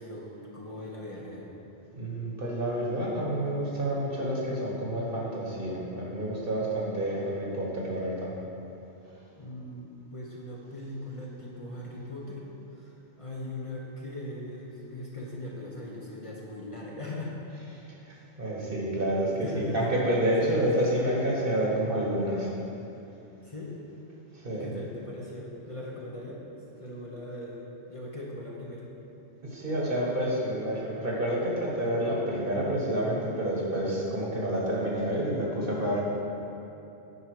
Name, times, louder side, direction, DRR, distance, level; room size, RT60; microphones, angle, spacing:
voice 1, 0.0-1.5 9.4-12.4 12.8-17.4 19.3-19.8 20.4-20.7 23.4-23.8 24.5-28.9, left 1 dB, 30° left, -5 dB, 1.0 m, -40 dB
voice 2, 1.9-8.3 17.5-22.5 24.3-24.7 29.5-36.0, right 1 dB, 55° right, -4 dB, 1.7 m, -29 dB
9.6 x 5.6 x 4.9 m, 2.9 s
omnidirectional pair, 1.1 m